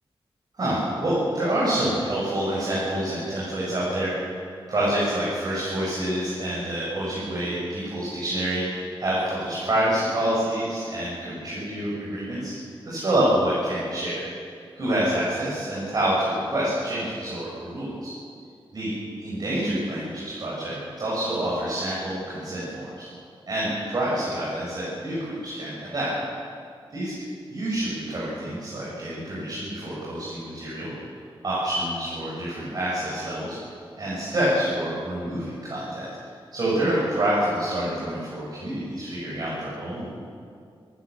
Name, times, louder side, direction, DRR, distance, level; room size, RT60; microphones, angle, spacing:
voice 1, 0.6-4.1 4.7-12.5 12.9-14.2 14.7-18.1 18.7-18.9 19.2-22.9 23.5-26.1 26.9-27.1 27.5-30.9 31.4-33.6 34.0-36.1 36.5-40.2, right 1 dB, 45° right, -7 dB, 7.2 m, -27 dB
29.0 x 14.5 x 7.1 m, 2.2 s
wide cardioid pair, 175°, 10 cm